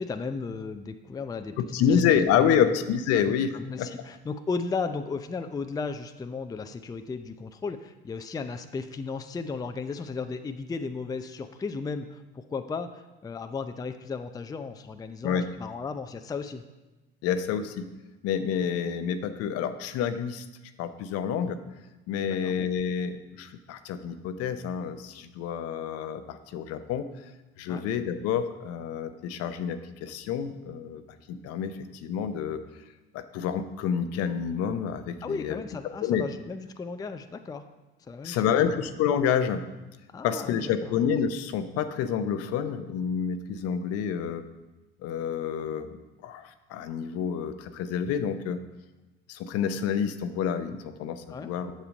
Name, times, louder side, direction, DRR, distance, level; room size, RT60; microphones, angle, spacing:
voice 1, 0.0-2.0 2.4-2.7 3.1-16.6 22.2-22.5 27.7-27.8 35.2-37.6 38.0-38.8 40.1-40.9 51.3-51.5, left 4 dB, 15° left, 8 dB, 0.5 m, -35 dB
voice 2, 1.7-3.5 3.8-3.9 15.2-15.5 17.2-17.9 18.2-20.4 20.8-21.6 22.1-27.1 27.6-31.0 31.3-32.6 33.1-35.6 36.0-36.2 38.2-39.6 40.2-44.4 45.0-45.9 46.2-48.6 49.3-51.7, left 8 dB, 55° left, 10 dB, 0.7 m, -28 dB
7.2 x 6.8 x 5.2 m, 1.1 s
hypercardioid pair, 75°, 29 cm